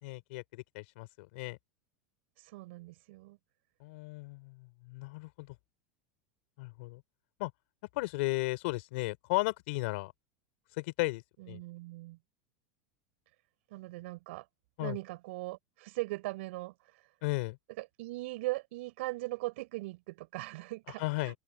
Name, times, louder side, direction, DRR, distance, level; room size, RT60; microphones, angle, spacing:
voice 1, 0.0-1.6 3.8-5.5 6.6-7.0 7.4-7.5 7.9-10.1 10.8-11.6 14.8-15.0 17.2-17.6 21.0-21.4, left 24 dB, 70° left, 4.2 m, -35 dB
voice 2, 2.4-3.4 11.4-12.2 13.7-14.5 14.8-17.0 17.8-21.4, right 20 dB, 70° right, 5.1 m, -40 dB
open air
supercardioid pair, 115°, 7 cm